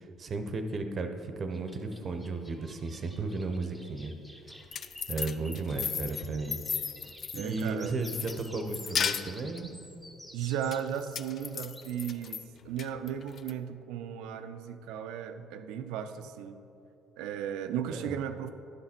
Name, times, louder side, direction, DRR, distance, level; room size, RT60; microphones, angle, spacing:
voice 1, 0.0-4.1 5.1-6.6 7.3-9.7 17.9-18.1, right 3 dB, 45° right, 6 dB, 0.7 m, -34 dB
sound 1, 1.5-12.0, equal, 5° left, 0.9 m, -51 dB
sound 2, 4.5-7.7 8.1-9.6 10.7-12.4 12.8-13.5, left 7 dB, 55° left, 0.3 m, -35 dB
voice 2, 7.3-8.0 10.3-16.6 17.2-18.5, right 9 dB, 80° right, 10 dB, 0.4 m, -35 dB
11.0 x 4.0 x 4.3 m, 2.8 s
supercardioid pair, 75°, 0 cm